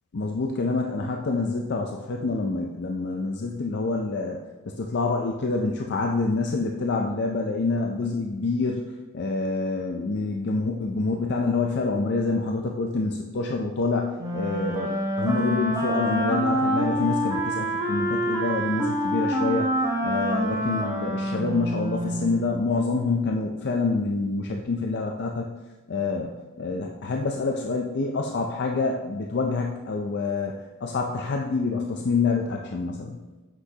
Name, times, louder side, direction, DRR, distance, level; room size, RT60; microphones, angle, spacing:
voice 1, 0.1-8.9 9.1-25.5 25.9-30.5 30.8-33.2, left 3 dB, 50° left, 1 dB, 0.4 m, -27 dB
Wind instrument woodwind instrument, 14.2-22.4, equal, 15° right, 0.9 m, -26 dB
8.1 x 6.1 x 2.8 m, 1.2 s
head